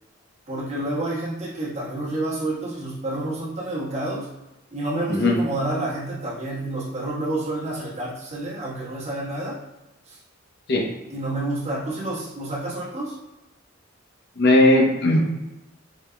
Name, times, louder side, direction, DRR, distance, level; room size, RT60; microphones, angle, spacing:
voice 1, 0.5-4.3 4.7-9.6 10.1-10.2 11.1-13.1, right 2 dB, 35° right, -6 dB, 1.2 m, -29 dB
voice 2, 14.4-15.2, left 1 dB, 55° left, 0 dB, 0.8 m, -17 dB
4.9 x 3.5 x 2.2 m, 1.0 s
head